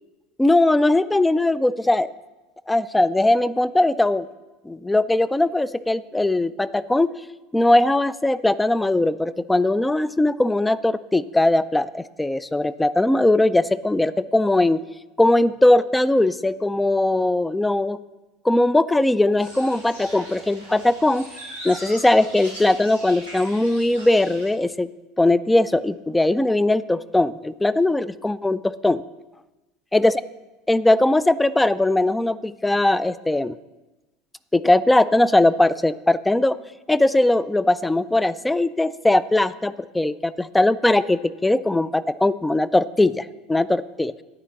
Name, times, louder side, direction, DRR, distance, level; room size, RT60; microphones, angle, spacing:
voice 1, 0.4-2.1 2.7-4.3 4.7-7.1 7.5-14.8 15.2-18.0 18.4-21.3 21.6-24.9 25.2-29.0 29.9-30.2 30.7-33.6 34.5-36.6 36.9-44.1, left 2 dB, 10° left, 17 dB, 0.3 m, -20 dB
sound 1, 19.4-24.5, right 1 dB, 90° left, 2.8 m, -40 dB
9.7 x 5.0 x 7.5 m, 1.1 s
figure-of-eight pair, 70°, 0 cm